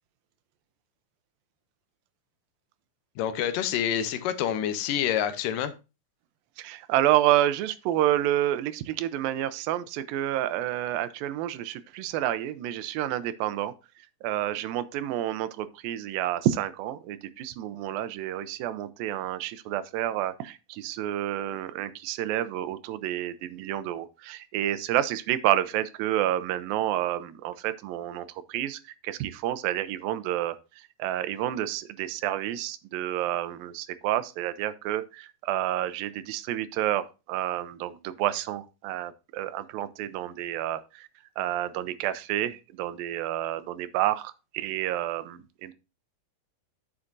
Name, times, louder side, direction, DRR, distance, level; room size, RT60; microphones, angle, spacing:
voice 1, 3.2-5.7, left 10 dB, 80° left, 2.3 m, -27 dB
voice 2, 6.6-13.7 14.2-41.1 41.4-45.7, right 13 dB, 90° right, 2.4 m, -29 dB
9.6 x 7.2 x 2.5 m
omnidirectional pair, 4.0 m